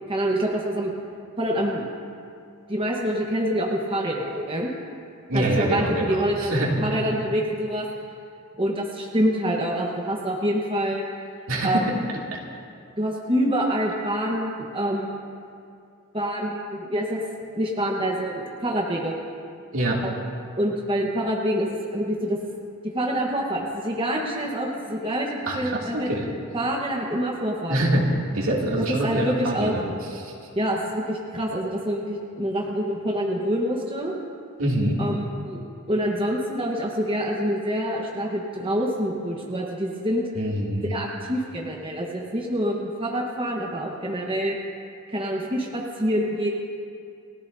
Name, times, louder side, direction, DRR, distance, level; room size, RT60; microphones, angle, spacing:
voice 1, 0.1-0.9 1.4-1.8 2.7-4.7 5.3-7.9 8.6-11.0 11.6-11.8 13.0-15.2 16.1-17.2 17.5-19.2 20.0-20.1 20.6-22.4 22.9-26.1 26.5-27.8 28.9-29.7 30.5-34.1 35.0-35.6 35.9-40.2 40.8-44.6 45.1-46.5, equal, 25° right, -2 dB, 1.3 m, -26 dB
voice 2, 5.3-6.8 11.5-11.9 12.3-12.4 19.7-20.0 25.5-26.3 27.7-29.9 30.2-30.3 34.6-35.0 40.4-40.9, right 1 dB, 70° right, -3 dB, 2.8 m, -25 dB
30.0 x 14.5 x 2.8 m, 2.5 s
head